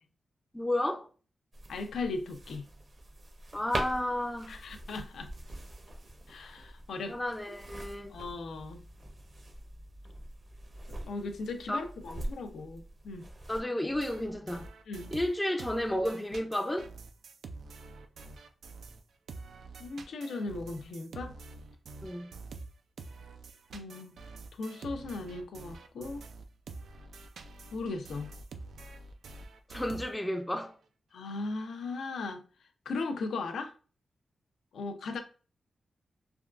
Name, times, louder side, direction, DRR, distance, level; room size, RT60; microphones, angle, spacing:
voice 1, 0.5-1.1 3.5-4.6 7.1-8.2 11.7-11.9 13.5-14.7 15.1-16.9 22.0-22.3 29.7-30.8, left 1 dB, 10° left, 0.4 m, -32 dB
sound 1, 1.5-13.6, right 1 dB, 50° right, 0.8 m, -44 dB
voice 2, 1.7-2.6 4.5-5.3 6.3-7.2 8.1-8.8 11.1-13.3 14.9-15.1 19.8-21.4 23.7-24.1 24.5-26.3 27.7-28.3 31.1-32.4 32.9-33.7 34.7-35.2, left 3 dB, 85° left, 0.4 m, -37 dB
sound 2, 13.9-19.0 19.3-30.4, right 3 dB, 85° right, 0.3 m, -47 dB
3.3 x 2.2 x 2.4 m
cardioid pair, 80°, 0 cm